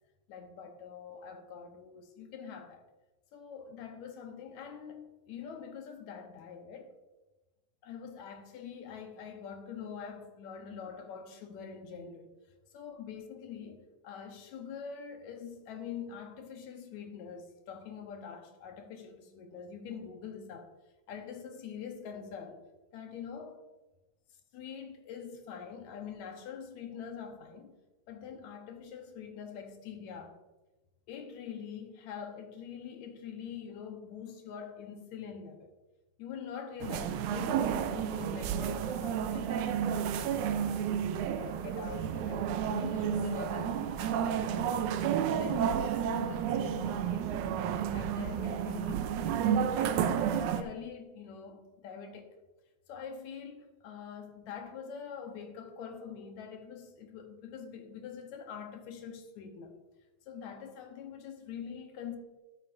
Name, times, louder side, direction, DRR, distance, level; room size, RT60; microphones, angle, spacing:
voice 1, 0.3-2.8 3.3-6.9 7.8-12.3 12.7-20.7 21.1-22.6 22.9-23.5 24.5-27.8 28.1-30.4 31.1-35.7 36.2-41.0 41.3-45.0 45.3-47.5 47.9-49.4 49.8-52.3 52.9-59.8 60.3-62.2, left 7 dB, 75° left, 2.3 m, -44 dB
sound 1, 36.8-50.6, right 8 dB, 90° right, 2.1 m, -31 dB
12.5 x 9.1 x 2.6 m
omnidirectional pair, 3.4 m